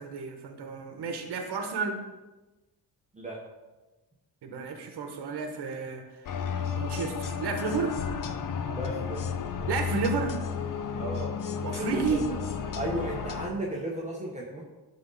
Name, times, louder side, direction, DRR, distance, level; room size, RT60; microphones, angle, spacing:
voice 1, 0.0-2.0 4.4-6.0 6.6-8.0 9.7-10.4 11.6-12.3, right 5 dB, 75° right, 5 dB, 1.1 m, -31 dB
sound 1, 6.2-13.5, left 7 dB, 55° left, 0.6 m, -33 dB
voice 2, 8.7-9.3 10.9-11.3 11.7-12.2 12.7-14.6, right 1 dB, 15° right, -4 dB, 1.0 m, -34 dB
11.0 x 3.9 x 3.9 m, 1.1 s
wide cardioid pair, 150°, 40 cm